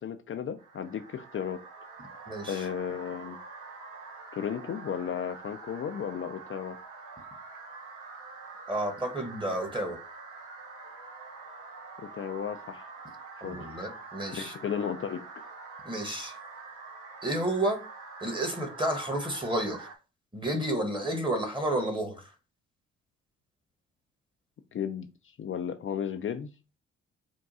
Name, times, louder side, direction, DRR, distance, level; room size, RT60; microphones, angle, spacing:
voice 1, 0.0-1.6 2.5-3.4 4.3-6.8 12.0-12.8 13.4-13.7 14.3-15.2 24.7-25.1 25.4-26.5, left 8 dB, 40° left, 0.5 m, -34 dB
sound 1, 0.6-20.0, right 4 dB, 75° right, 1.0 m, -46 dB
voice 2, 2.3-2.6 8.7-10.0 13.4-14.5 15.8-16.3 17.2-17.8 18.2-19.9 20.3-22.2, right 1 dB, 15° right, 1.4 m, -31 dB
3.6 x 2.2 x 4.1 m
hypercardioid pair, 50°, 31 cm